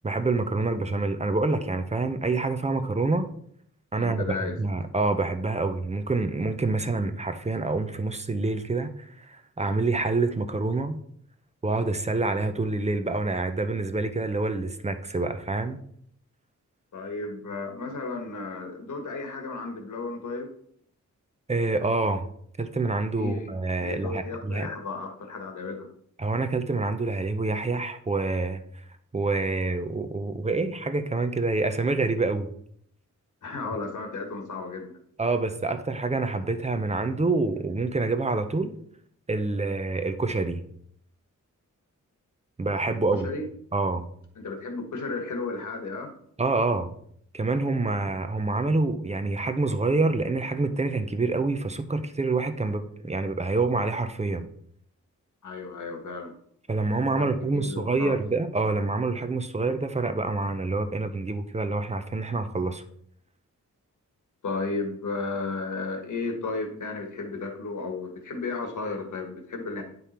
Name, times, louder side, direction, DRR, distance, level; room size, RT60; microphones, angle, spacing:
voice 1, 0.0-3.3 3.9-11.0 11.6-15.8 21.5-22.3 22.6-24.7 26.2-28.6 29.1-32.5 35.2-38.7 39.3-40.6 42.6-43.3 43.7-44.1 46.4-46.9 47.3-54.5 56.7-62.8, right 3 dB, 20° right, 9 dB, 0.6 m, -27 dB
voice 2, 4.0-4.5 16.9-20.5 23.2-23.5 23.8-25.9 33.4-35.0 43.2-43.5 44.4-46.1 55.4-56.4 57.2-58.1 64.4-69.8, left 3 dB, 70° left, 4 dB, 1.6 m, -34 dB
10.0 x 5.5 x 4.3 m, 0.66 s
wide cardioid pair, 165°, 31 cm